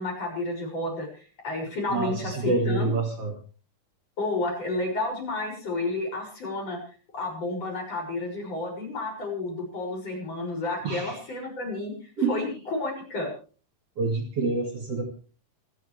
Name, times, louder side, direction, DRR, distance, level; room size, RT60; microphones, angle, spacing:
voice 1, 0.0-3.0 4.2-6.8 7.1-13.3, left 2 dB, 45° left, 1 dB, 7.6 m, -31 dB
voice 2, 1.9-3.3 10.8-11.2 12.2-12.5 14.0-15.0, right 3 dB, 45° right, 2 dB, 3.4 m, -27 dB
27.0 x 11.5 x 3.3 m, 0.39 s
omnidirectional pair, 3.8 m